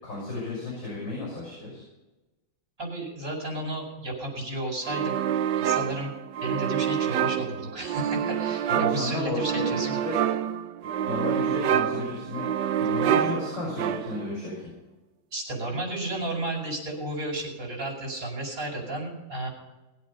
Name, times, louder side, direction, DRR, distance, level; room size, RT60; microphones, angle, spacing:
voice 1, 0.0-1.8 8.7-9.7 10.0-10.1 11.0-12.5 12.8-14.7, left 2 dB, 70° left, -5 dB, 7.3 m, -33 dB
voice 2, 2.8-5.1 5.5-6.1 6.4-10.0 15.3-19.5, right 1 dB, 45° right, -1 dB, 5.7 m, -33 dB
sound 1, 4.9-14.4, right 9 dB, 70° right, 1.3 m, -27 dB
19.5 x 8.5 x 5.5 m, 1.1 s
omnidirectional pair, 2.1 m